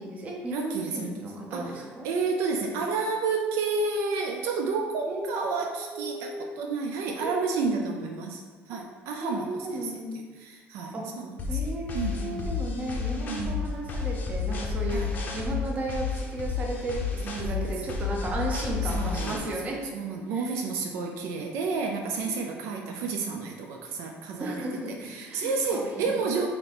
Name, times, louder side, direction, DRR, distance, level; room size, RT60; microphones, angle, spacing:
voice 1, 0.0-2.1 5.1-6.5 7.2-8.0 9.2-10.1 10.9-11.0 11.5-19.8 20.3-20.5 22.2-22.8 24.4-26.1, right 1 dB, 30° right, -1 dB, 0.7 m, -35 dB
voice 2, 0.5-1.1 1.5-11.7 11.9-12.6 13.3-13.6 14.9-15.2 17.2-17.9 18.8-19.5 19.9-26.5, right 4 dB, 75° right, 2 dB, 0.4 m, -31 dB
sound 1, 11.4-19.4, left 5 dB, 35° left, 0.6 m, -31 dB
3.9 x 2.9 x 3.4 m, 1.5 s
cardioid pair, 140°, 5 cm